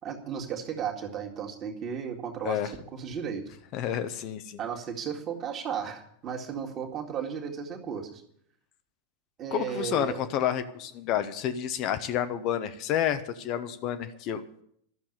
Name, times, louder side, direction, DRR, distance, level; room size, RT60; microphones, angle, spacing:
voice 1, 0.0-3.4 4.6-8.2 9.4-10.2, right 7 dB, 30° right, 2 dB, 2.1 m, -35 dB
voice 2, 3.7-4.6 9.5-14.6, left 10 dB, 40° left, 10 dB, 0.8 m, -30 dB
12.5 x 7.1 x 9.9 m, 0.69 s
figure-of-eight pair, 90°, 0 cm